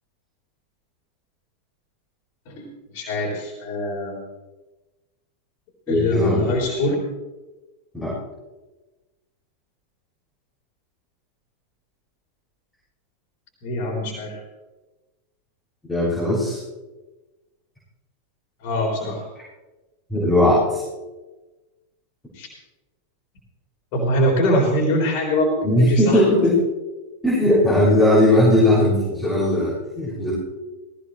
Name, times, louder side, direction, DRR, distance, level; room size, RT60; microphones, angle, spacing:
voice 1, 2.5-4.2 5.9-7.0 13.6-14.4 18.6-19.3 22.3-22.5 23.9-26.3, left 1 dB, 45° left, 0 dB, 3.8 m, -23 dB
voice 2, 5.9-6.6 7.9-8.1 15.9-16.6 20.1-20.8 25.6-26.6 27.2-30.3, left 1 dB, 5° left, -10 dB, 6.0 m, -18 dB
18.5 x 16.5 x 3.3 m, 1.1 s
figure-of-eight pair, 90°, 0 cm